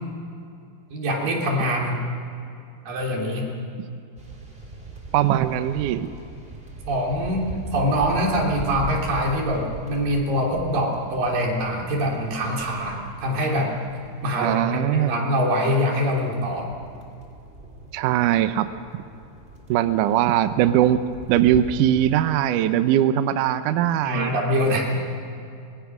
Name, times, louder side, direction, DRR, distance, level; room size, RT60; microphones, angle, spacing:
voice 1, 0.9-2.0 2.9-3.5 6.9-13.7 14.2-16.7 24.0-24.9, equal, 65° right, -2 dB, 4.9 m, -24 dB
sound 1, 4.2-14.3 16.0-22.2, right 2 dB, 15° right, 2.6 m, -39 dB
voice 2, 5.1-6.1 14.4-15.3 17.9-18.7 19.7-24.3, right 11 dB, 80° right, 10 dB, 1.9 m, -21 dB
25.5 x 21.0 x 6.1 m, 2.6 s
omnidirectional pair, 4.4 m